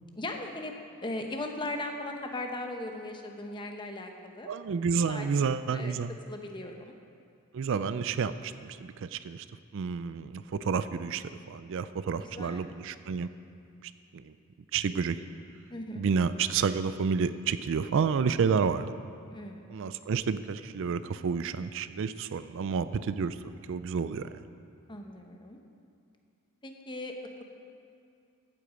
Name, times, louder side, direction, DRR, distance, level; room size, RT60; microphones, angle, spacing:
voice 1, 0.2-0.7 1.0-4.5 5.1-6.9 11.8-11.9 12.2-12.6 15.7-16.0 19.3-19.6 24.9-25.6 26.6-27.4, left 2 dB, 20° left, 3 dB, 0.9 m, -38 dB
voice 2, 4.5-6.1 7.5-9.4 9.7-13.3 14.7-15.2 16.0-18.9 19.7-23.4 23.7-24.3, right 6 dB, 60° right, 13 dB, 0.4 m, -30 dB
14.5 x 8.2 x 5.0 m, 2.4 s
head